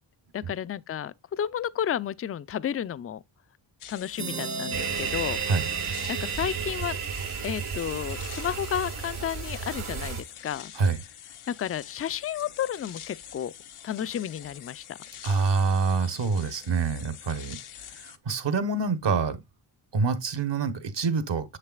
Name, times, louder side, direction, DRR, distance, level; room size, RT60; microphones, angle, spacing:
voice 1, 0.3-3.2 3.9-5.4 6.1-7.0 7.4-10.7 11.5-13.5 13.8-15.0, left 9 dB, 30° left, 0.4 m, -32 dB
sound 1, 3.8-18.2, left 10 dB, 80° left, 0.8 m, -46 dB
sound 2, 4.2-7.7, right 5 dB, 35° right, 0.8 m, -36 dB
sound 3, 4.7-10.2, right 7 dB, 75° right, 1.6 m, -33 dB
voice 2, 15.2-19.4 19.9-21.6, right 4 dB, 60° right, 1.2 m, -26 dB
7.4 x 6.6 x 2.3 m
cardioid pair, 60°, 49 cm